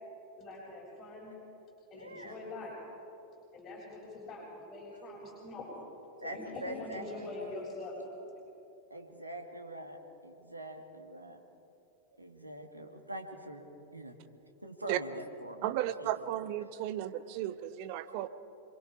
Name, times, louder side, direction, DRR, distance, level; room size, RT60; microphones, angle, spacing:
voice 1, 0.4-1.3 1.9-2.7 3.5-5.7 6.2-8.1, left 2 dB, 25° left, -8 dB, 7.3 m, -43 dB
voice 2, 1.9-2.4 4.9-5.0 6.2-7.6 8.9-10.0 10.2-11.4 12.2-14.2 14.6-15.7 16.0-16.1, right 1 dB, 85° right, 3 dB, 2.3 m, -44 dB
voice 3, 15.6-18.3, right 13 dB, 45° right, 12 dB, 1.1 m, -34 dB
27.5 x 22.5 x 4.9 m, 2.8 s
figure-of-eight pair, 90°, 0 cm